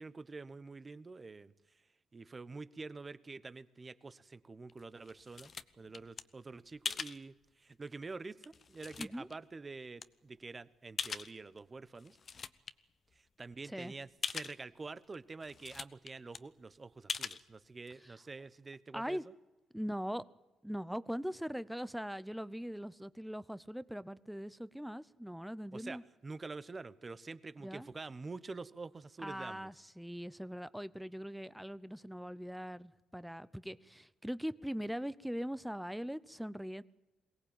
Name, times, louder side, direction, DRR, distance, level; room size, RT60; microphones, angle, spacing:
voice 1, 0.0-1.8 2.1-12.2 13.1-19.3 25.7-29.7, right 3 dB, 30° right, 16 dB, 1.0 m, -47 dB
sound 1, 4.7-6.2 6.8-7.2 7.9-8.0 8.4-9.4 10.0-10.1 11.0-11.6 12.0-12.7 13.1-13.2 13.4-13.5 14.2-14.6 15.1-15.2 15.4-16.1 16.3-16.4 17.1-17.4, left 5 dB, 45° left, 0.9 m, -41 dB
voice 2, 9.0-9.3 13.6-13.9 18.0-18.1 18.9-19.3 19.7-20.2 20.6-26.0 27.6-27.9 29.2-36.8, equal, ahead, 17 dB, 0.8 m, -41 dB
22.5 x 18.0 x 9.0 m, 1.1 s
cardioid pair, 90°, 0 cm